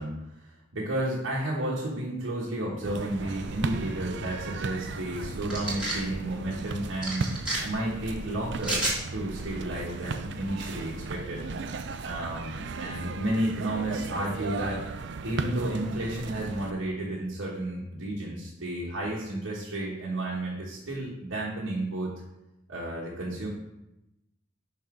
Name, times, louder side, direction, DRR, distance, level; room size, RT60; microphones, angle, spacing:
voice 1, 0.0-7.3 7.6-8.8 9.1-11.5 12.0-14.8 15.2-22.1 22.7-23.5, right 1 dB, 80° right, -5 dB, 1.3 m, -32 dB
sound 1, 2.8-16.7, right 4 dB, 60° right, 0.4 m, -36 dB
sound 2, 5.5-6.0 7.0-7.6 8.6-9.0, right 2 dB, 5° right, 1.6 m, -29 dB
5.9 x 4.2 x 4.9 m, 0.90 s
head